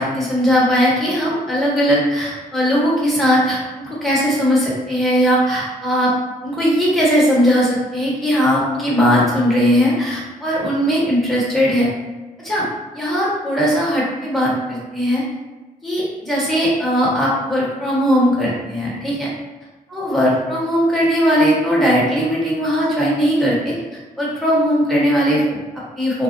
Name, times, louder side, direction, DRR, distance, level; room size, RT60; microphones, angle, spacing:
voice 1, 0.0-6.1 6.4-11.9 12.4-12.7 12.9-15.2 15.8-19.3 19.9-23.7 24.2-26.2, equal, ahead, -7 dB, 1.2 m, -18 dB
3.2 x 2.1 x 2.6 m, 1.2 s
cardioid pair, 85°, 15 cm